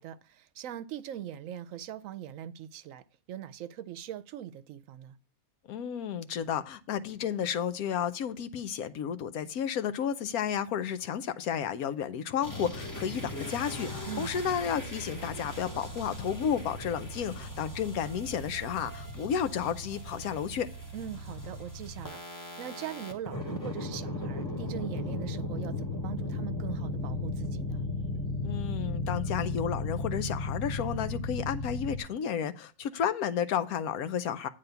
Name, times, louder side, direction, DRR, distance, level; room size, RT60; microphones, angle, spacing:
voice 1, 0.0-5.2 14.0-14.5 20.9-27.9, right 10 dB, 70° right, 0.9 m, -41 dB
voice 2, 5.7-20.7 28.4-34.5, left 8 dB, 80° left, 1.2 m, -32 dB
sound 1, 12.4-32.0, left 2 dB, 15° left, 1.2 m, -36 dB
9.2 x 3.6 x 6.7 m
omnidirectional pair, 1.5 m